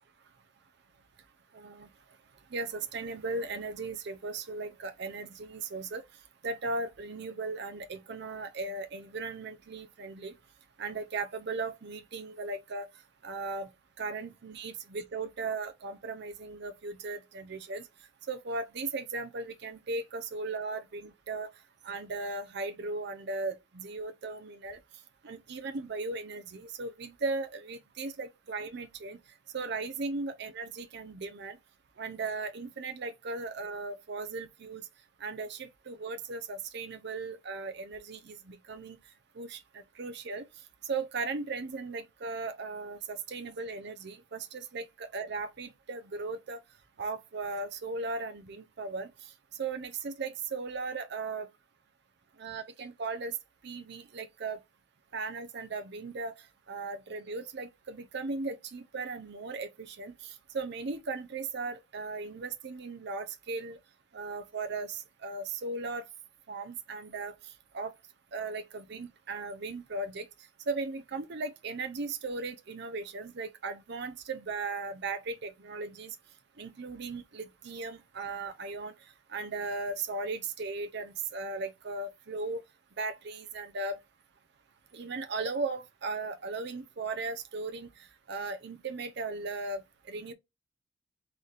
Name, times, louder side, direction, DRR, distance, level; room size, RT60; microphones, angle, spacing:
voice 1, 1.5-1.9 2.5-6.0 6.4-10.3 10.8-12.9 13.2-13.7 14.0-17.9 18.3-21.5 21.8-24.8 25.2-29.2 29.5-31.6 32.0-34.8 35.2-39.0 39.4-40.4 40.8-46.6 47.0-49.1 49.6-51.5 52.4-53.3 53.6-54.6 55.1-56.3 56.7-63.8 64.1-66.0 66.5-67.3 67.7-67.9 68.3-70.3 70.7-76.2 76.6-78.9 79.3-82.6 83.0-84.0 84.9-87.9 88.3-90.3, right 3 dB, 60° right, 0.6 m, -37 dB
4.0 x 3.8 x 3.3 m
head